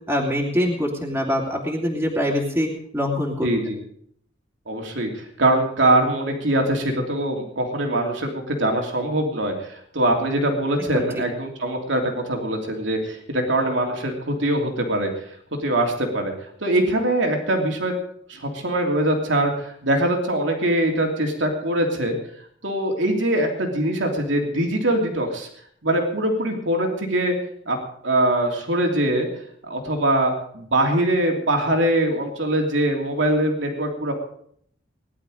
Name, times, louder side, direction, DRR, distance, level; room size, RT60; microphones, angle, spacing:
voice 1, 0.1-2.7 2.9-3.5 10.9-11.1, equal, 10° right, -3 dB, 2.7 m, -23 dB
voice 2, 3.4-3.8 4.7-15.1 15.5-16.3 16.6-17.9 18.3-22.2 22.6-25.5 25.8-27.3 27.7-27.8 28.0-29.3 29.7-34.1, right 1 dB, 70° right, 2 dB, 3.1 m, -22 dB
19.5 x 11.5 x 5.1 m, 0.65 s
head